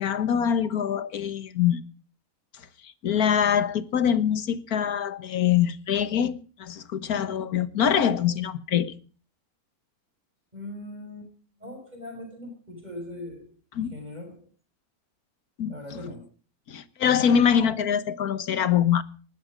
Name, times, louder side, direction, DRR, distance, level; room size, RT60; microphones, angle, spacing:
voice 1, 0.0-1.8 2.5-8.9 13.7-13.9 15.6-16.1 16.7-19.0, left 8 dB, 75° left, 1.6 m, -24 dB
voice 2, 10.5-11.3 11.6-13.5 13.9-14.5 15.7-16.3, left 1 dB, 25° right, 6.3 m, -40 dB
20.0 x 13.0 x 5.1 m
omnidirectional pair, 1.6 m